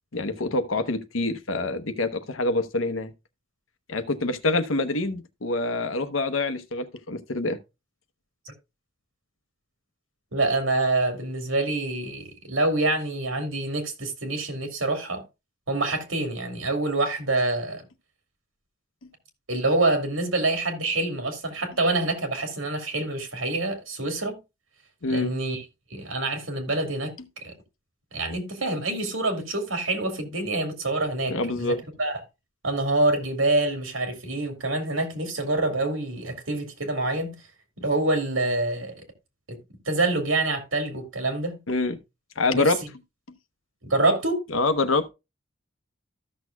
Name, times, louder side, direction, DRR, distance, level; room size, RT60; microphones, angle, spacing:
voice 1, 0.1-3.1 3.9-7.6 25.0-25.3 31.3-31.8 41.7-42.0 42.4-42.8 44.5-45.1, left 2 dB, 80° left, 0.9 m, -26 dB
voice 2, 10.3-15.2 15.7-17.8 19.5-24.4 25.1-25.6 25.9-27.1 27.4-27.5 28.1-32.2 32.6-37.3 37.8-38.9 39.5-39.6 39.9-41.6 42.5-42.6 43.8-44.4, right 2 dB, 80° right, 2.4 m, -26 dB
14.0 x 6.3 x 2.3 m
head